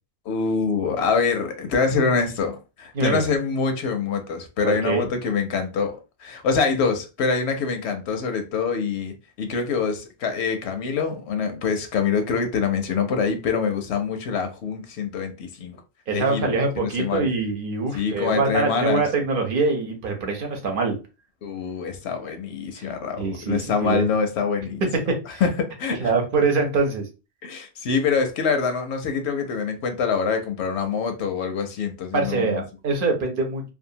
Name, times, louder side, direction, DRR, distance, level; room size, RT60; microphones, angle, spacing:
voice 1, 0.3-15.8 16.1-17.3 17.9-19.0 21.4-24.8 25.4-26.1 27.4-32.6, left 5 dB, 80° left, 0.9 m, -25 dB
voice 2, 4.6-5.1 16.1-21.0 22.8-22.9 23.2-24.1 24.9-25.4 26.0-27.1 32.1-33.6, right 3 dB, 55° right, 0.9 m, -24 dB
2.6 x 2.4 x 2.7 m
omnidirectional pair, 1.1 m